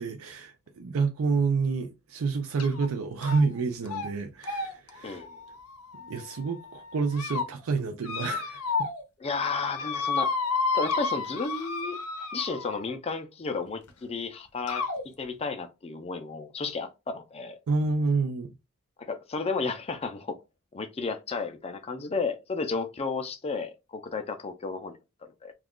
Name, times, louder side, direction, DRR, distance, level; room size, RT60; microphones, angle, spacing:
voice 1, 0.0-5.2 6.0-8.9 17.7-18.5, right 4 dB, 65° right, 0.4 m, -29 dB
sound 1, 2.6-2.9 3.2-3.6 3.9-4.1 4.4-6.4 6.9-7.5 8.0-9.0 9.3-12.9 13.9-14.0 14.7-15.0, left 4 dB, 90° left, 0.6 m, -31 dB
voice 2, 9.2-10.4 10.7-12.0 12.3-14.9 15.2-17.6 19.0-20.4 20.7-24.9 25.4-25.5, left 4 dB, 25° left, 0.4 m, -33 dB
2.4 x 2.3 x 3.5 m
head